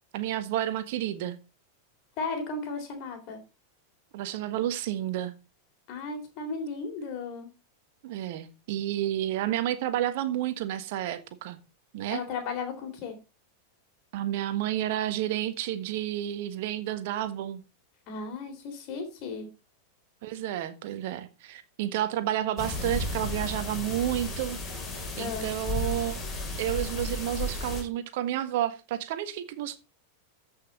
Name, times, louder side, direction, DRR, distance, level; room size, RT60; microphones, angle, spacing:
voice 1, 0.1-1.4 4.1-5.3 8.0-11.6 11.9-12.2 14.1-17.6 20.2-24.6 25.2-26.2 26.6-29.8, right 12 dB, 50° right, 1.3 m, -30 dB
voice 2, 2.2-3.4 5.9-7.5 12.1-13.2 18.1-19.5 25.2-25.5, left 4 dB, 40° left, 3.7 m, -35 dB
sound 1, 22.6-27.8, left 2 dB, 25° left, 4.2 m, -33 dB
14.0 x 5.8 x 4.2 m
figure-of-eight pair, 90°, 0 cm